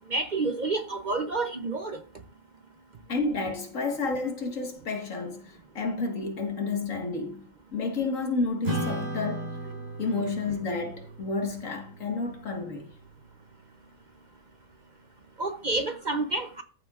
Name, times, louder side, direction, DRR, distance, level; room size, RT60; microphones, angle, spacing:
voice 1, 0.1-2.0 15.4-16.6, right 3 dB, 40° right, 0.8 m, -29 dB
voice 2, 3.1-9.6 10.0-12.9, left 3 dB, 75° left, 2.1 m, -31 dB
Acoustic guitar / Strum, 8.6-13.4, right 1 dB, 65° right, 4.6 m, -37 dB
14.0 x 7.7 x 2.5 m
omnidirectional pair, 1.4 m